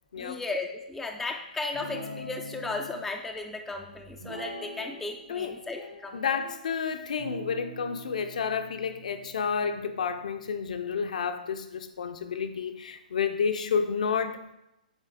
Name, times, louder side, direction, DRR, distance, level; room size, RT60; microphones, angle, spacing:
voice 1, 0.2-6.2, left 3 dB, 5° left, 3 dB, 0.4 m, -35 dB
Guitar, 1.7-2.9 4.2-5.1 5.4-6.6 7.2-10.7, equal, 80° right, 1.9 m, -44 dB
voice 2, 6.1-14.5, left 6 dB, 55° left, 8 dB, 0.6 m, -30 dB
8.1 x 3.9 x 3.7 m, 0.90 s
figure-of-eight pair, 125°, 5 cm